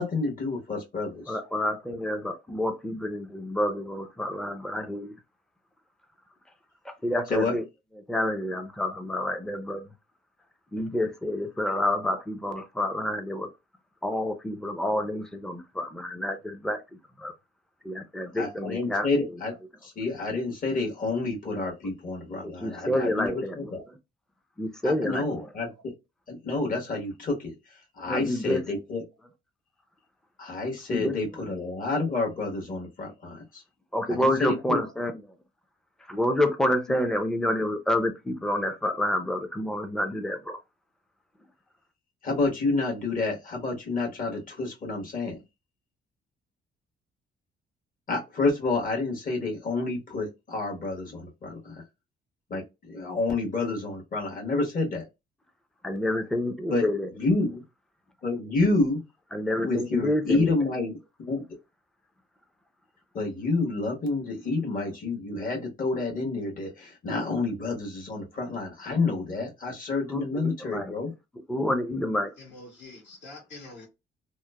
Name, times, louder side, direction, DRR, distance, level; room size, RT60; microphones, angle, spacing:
voice 1, 0.0-1.4 7.3-7.5 18.4-23.8 24.8-25.9 26.3-27.5 28.0-29.0 30.4-33.6 34.1-34.8 36.9-37.0 42.2-45.4 48.1-51.7 52.5-55.1 56.7-56.9 57.1-57.6 58.2-59.0 59.6-61.4 63.1-71.1, left 3 dB, 45° left, 1.2 m, -29 dB
voice 2, 1.3-5.1 6.8-7.7 8.1-9.9 10.7-13.5 14.0-17.3 17.8-19.4 22.4-24.0 24.6-25.3 28.1-28.6 30.9-31.2 33.9-35.2 36.1-40.6 55.8-57.1 59.3-60.5 70.1-70.9 71.5-72.3, left 1 dB, 5° left, 0.5 m, -28 dB
voice 3, 72.4-73.9, left 2 dB, 65° left, 1.6 m, -45 dB
2.9 x 2.1 x 2.2 m
cardioid pair, 90°, 20 cm